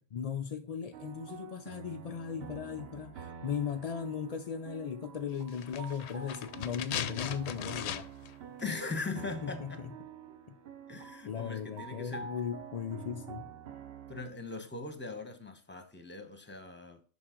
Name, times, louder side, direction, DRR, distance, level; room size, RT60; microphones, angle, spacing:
voice 1, 0.1-8.1 9.4-10.0 10.5-10.6 11.2-13.4, left 7 dB, 85° left, 0.3 m, -37 dB
sound 1, 0.9-14.3, right 7 dB, 55° right, 0.8 m, -48 dB
sound 2, 5.5-8.3 8.6-8.7, left 10 dB, 65° left, 0.8 m, -38 dB
voice 2, 8.6-9.8 10.9-12.3 14.1-17.0, left 3 dB, 10° left, 0.9 m, -40 dB
7.1 x 5.5 x 3.7 m
omnidirectional pair, 1.3 m